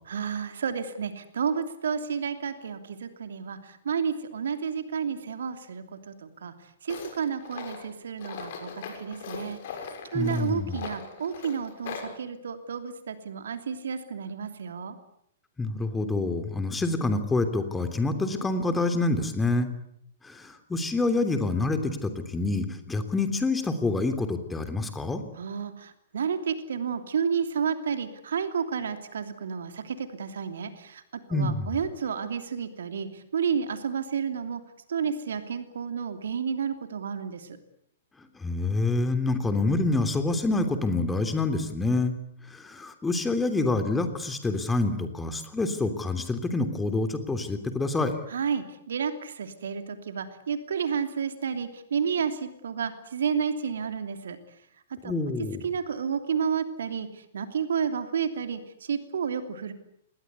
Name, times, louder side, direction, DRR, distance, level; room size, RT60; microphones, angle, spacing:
voice 1, 0.1-6.5 6.8-9.6 10.1-14.9 25.3-31.0 31.3-34.6 34.9-37.5 48.3-54.4 55.0-55.1 55.6-57.1 57.3-59.7, right 6 dB, 65° right, 8 dB, 2.9 m, -31 dB
Tools, 6.9-12.1, left 6 dB, 55° left, 6.7 m, -40 dB
voice 2, 10.1-10.8 15.6-19.7 20.2-25.2 31.3-31.8 38.4-42.1 42.5-48.1 55.0-55.6, left 2 dB, 10° left, 7 dB, 3.1 m, -27 dB
27.5 x 21.0 x 8.3 m, 0.71 s
figure-of-eight pair, 110°, 0 cm